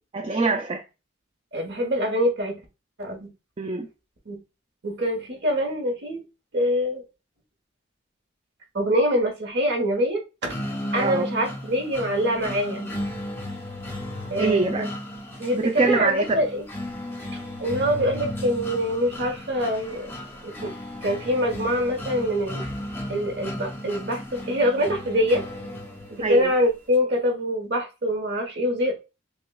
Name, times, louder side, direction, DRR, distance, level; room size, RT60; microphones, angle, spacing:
voice 1, 0.1-0.8 3.6-3.9 11.0-11.3 14.4-14.9 15.5-16.4 26.2-26.5, right 3 dB, 30° right, 0.3 m, -24 dB
voice 2, 1.5-2.6 3.0-3.3 4.3-4.4 4.8-6.2 6.5-7.0 8.7-10.6 10.9-12.9 14.3-14.9 15.4-16.6 17.6-20.1 20.4-20.7 21.0-22.6 23.1-25.4 26.1-29.0, equal, 60° right, 1.1 m, -24 dB
sound 1, 10.5-26.5, left 1 dB, 10° left, 0.7 m, -35 dB
6.0 x 2.2 x 2.3 m
head